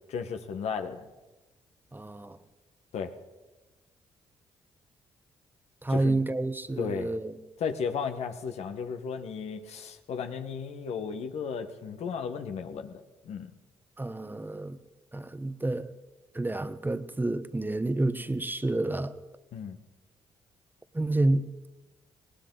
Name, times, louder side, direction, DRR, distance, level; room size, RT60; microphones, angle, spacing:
voice 1, 0.1-1.0 2.9-3.1 5.9-6.2 6.8-7.1 7.6-13.5 19.5-19.8, left 6 dB, 70° left, 1.4 m, -34 dB
voice 2, 1.9-2.4 5.8-7.4 14.0-14.8 15.1-15.9 16.3-19.1 20.9-21.5, right 2 dB, 15° right, 1.1 m, -29 dB
20.0 x 18.0 x 4.0 m
hypercardioid pair, 50°, 11 cm